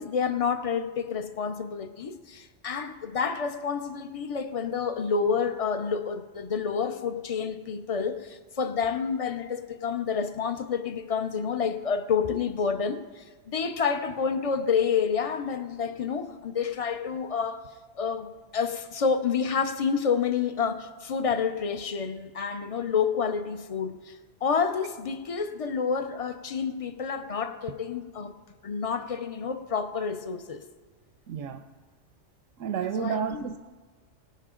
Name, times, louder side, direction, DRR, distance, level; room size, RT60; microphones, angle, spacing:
voice 1, 0.0-17.6 18.0-28.3 28.6-30.6 33.0-33.4, left 6 dB, 40° left, 0.5 m, -29 dB
voice 2, 31.3-31.7 32.6-33.6, right 7 dB, 85° right, 1.0 m, -31 dB
18.5 x 11.0 x 3.8 m
omnidirectional pair, 1.3 m